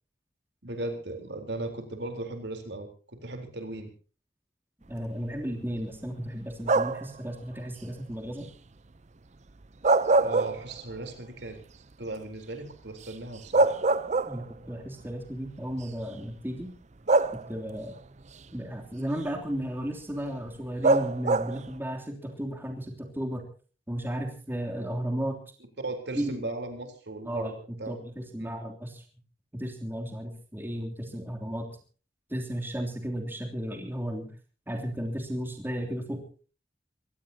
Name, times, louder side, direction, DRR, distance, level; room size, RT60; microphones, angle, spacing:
voice 1, 0.6-3.9 10.2-11.6 12.0-13.7 25.8-28.0 28.4-28.5, right 2 dB, 70° right, 5 dB, 4.0 m, -37 dB
voice 2, 4.9-8.5 14.3-16.7 17.5-18.0 18.5-23.5 23.9-25.4 26.1-26.4 27.2-29.0 29.5-31.7 32.3-34.3 34.7-36.2, equal, 10° right, 2 dB, 3.1 m, -34 dB
sound 1, 6.6-7.2 9.6-11.0 11.4-11.5 13.1-13.2 13.5-14.7 15.7-15.8 17.1-17.8 20.8-21.7, right 3 dB, 40° right, 0.7 m, -24 dB
25.0 x 17.0 x 2.9 m, 0.38 s
head